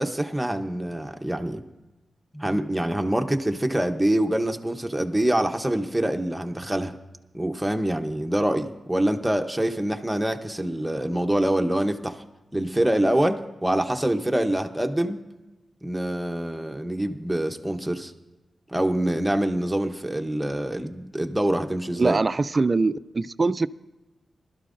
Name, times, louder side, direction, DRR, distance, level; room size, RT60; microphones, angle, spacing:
voice 1, 0.0-1.6 2.3-6.9 7.3-12.2 12.5-15.2 15.8-18.1 18.7-22.2, right 1 dB, 5° right, 0.8 m, -25 dB
voice 2, 22.0-23.7, right 3 dB, 35° right, 0.3 m, -23 dB
20.0 x 12.5 x 2.6 m
wide cardioid pair, 95°, 0 cm